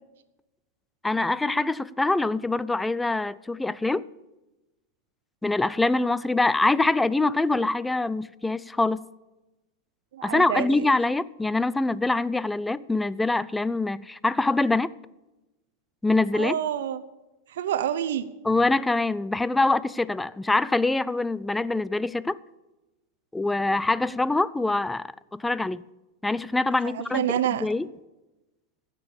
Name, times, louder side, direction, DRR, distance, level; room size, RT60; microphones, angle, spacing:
voice 1, 1.0-4.1 5.4-9.1 10.2-14.9 16.0-16.6 18.4-22.4 23.3-25.8 26.2-27.3 27.6-27.9, left 2 dB, 5° left, 0.4 m, -24 dB
voice 2, 10.1-10.9 16.3-17.0 17.5-18.3 26.8-27.7, right 10 dB, 80° right, 0.8 m, -28 dB
16.0 x 6.8 x 8.6 m
supercardioid pair, 145°, 0 cm